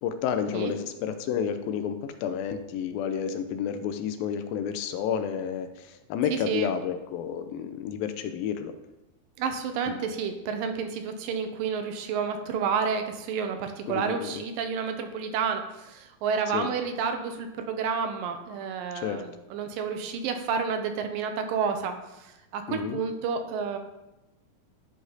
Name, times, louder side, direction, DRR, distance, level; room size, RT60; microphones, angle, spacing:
voice 1, 0.0-8.7 9.9-10.0 13.9-14.4 16.5-16.7 19.0-19.2 22.7-23.0, left 8 dB, 85° left, 8 dB, 2.5 m, -30 dB
voice 2, 6.3-6.7 9.4-23.8, right 6 dB, 80° right, 6 dB, 2.5 m, -30 dB
11.5 x 5.0 x 4.0 m, 0.98 s
omnidirectional pair, 4.1 m